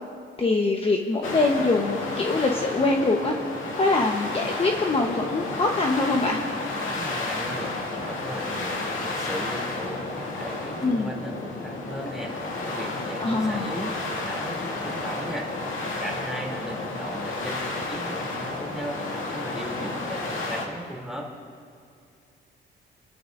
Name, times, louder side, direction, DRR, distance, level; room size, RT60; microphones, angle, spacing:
voice 1, 0.4-3.4 3.8-6.4 10.8-11.1 13.2-13.7, left 3 dB, 30° left, 1 dB, 1.1 m, -23 dB
sound 1, 1.2-20.7, left 2 dB, 80° left, 2.2 m, -32 dB
voice 2, 6.8-21.3, right 1 dB, ahead, -2 dB, 3.1 m, -37 dB
29.5 x 13.5 x 2.6 m, 2.3 s
cardioid pair, 90°, 20 cm